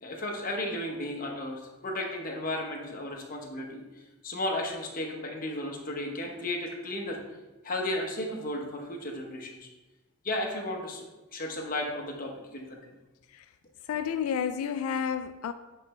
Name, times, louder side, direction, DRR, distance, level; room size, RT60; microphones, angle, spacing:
voice 1, 0.0-3.8 4.2-7.2 7.6-9.7 10.2-11.1 11.3-12.9, left 1 dB, 40° left, 0.9 m, -34 dB
voice 2, 13.9-15.5, left 7 dB, 85° left, 0.3 m, -30 dB
8.2 x 3.3 x 4.2 m
head